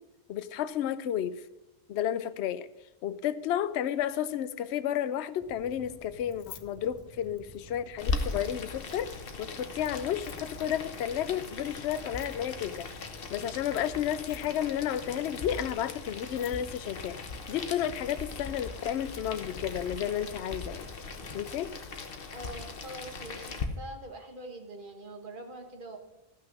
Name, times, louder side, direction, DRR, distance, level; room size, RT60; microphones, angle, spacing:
voice 1, 0.3-1.4 1.9-2.7 3.0-17.2 17.5-20.9 21.3-21.7, left 10 dB, 60° left, 13 dB, 0.8 m, -32 dB
sound 1, 5.4-21.4, equal, 5° right, 1.7 m, -53 dB
Keys jangling, 6.3-7.6 8.0-8.7 10.1-10.5 12.0-12.7 14.1-14.7 15.9-16.0 16.2-16.7, left 10 dB, 85° left, 1.2 m, -51 dB
Boiling, 8.0-23.6, left 4 dB, 45° left, 1.1 m, -39 dB
voice 2, 22.3-26.0, right 1 dB, 40° right, 4 dB, 1.6 m, -44 dB
13.0 x 6.2 x 6.1 m, 0.97 s
omnidirectional pair, 1.4 m